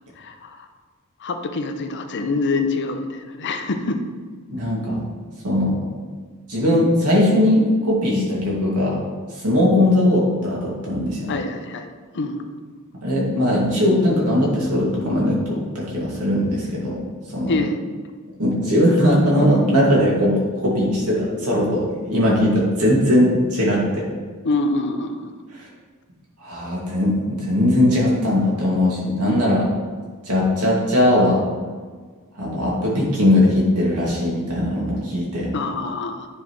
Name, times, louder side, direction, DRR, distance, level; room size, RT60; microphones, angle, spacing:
voice 1, 0.2-0.7 1.2-4.0 11.3-12.5 17.5-17.8 24.4-25.3 35.5-36.3, left 3 dB, 55° left, 7 dB, 0.6 m, -25 dB
voice 2, 4.5-5.0 5.4-5.8 6.5-9.0 9.4-11.3 13.0-17.0 17.3-17.6 18.4-24.0 25.6-25.7 26.4-29.7 30.3-31.4 32.4-35.5, left 1 dB, 85° right, -4 dB, 2.2 m, -19 dB
9.5 x 5.4 x 3.1 m, 1.5 s
head